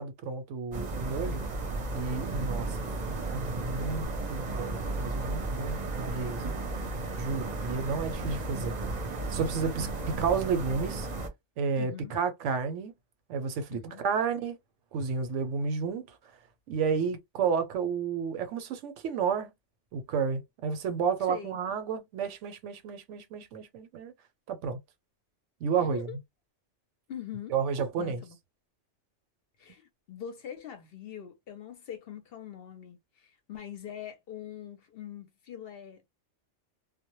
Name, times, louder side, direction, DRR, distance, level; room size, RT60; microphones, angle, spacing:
voice 1, 0.0-1.4 1.9-2.7 3.3-6.4 7.1-8.7 9.3-9.9 10.2-11.1 11.6-12.9 13.3-14.6 14.9-16.2 16.7-19.5 19.9-24.1 24.5-24.8 25.6-26.1 27.5-28.2, right 5 dB, 80° right, 0.9 m, -31 dB
sound 1, 0.7-11.3, right 2 dB, 45° right, 0.6 m, -34 dB
voice 2, 2.4-2.7 6.1-6.4 11.8-12.1 13.7-14.0 21.2-21.6 25.7-26.2 27.1-27.5 28.0-28.4 29.6-36.1, left 9 dB, 60° left, 0.7 m, -43 dB
2.1 x 2.1 x 2.9 m
omnidirectional pair, 1.2 m